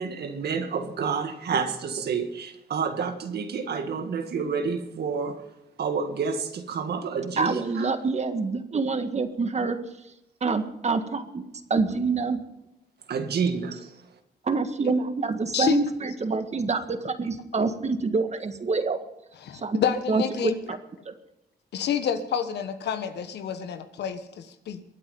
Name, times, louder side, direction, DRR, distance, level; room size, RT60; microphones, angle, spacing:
voice 1, 0.0-5.5 5.8-7.9 13.1-14.2, right 5 dB, 75° right, 1.8 m, -29 dB
voice 2, 7.4-9.8 10.4-12.4 14.4-19.0 19.5-19.8 20.1-20.8 21.0-21.1, right 4 dB, 40° right, 1.7 m, -26 dB
voice 3, 19.4-20.7 21.7-24.8, left 8 dB, 85° left, 1.3 m, -29 dB
23.0 x 8.8 x 5.4 m
cardioid pair, 80°, 17 cm